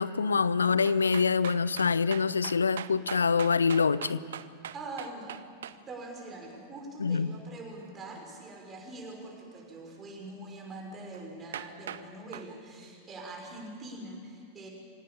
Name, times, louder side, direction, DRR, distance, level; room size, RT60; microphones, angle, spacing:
voice 1, 0.0-4.2 7.0-7.3, left 5 dB, 75° left, 18 dB, 0.6 m, -25 dB
sound 1, 0.8-5.8 11.1-11.2 11.5-12.0 12.3-12.5, right 10 dB, 60° right, 0.8 m, -41 dB
voice 2, 4.7-5.4 5.9-14.7, right 2 dB, 20° right, 1 dB, 5.9 m, -43 dB
25.0 x 18.0 x 8.8 m, 2.3 s
figure-of-eight pair, 90°, 0 cm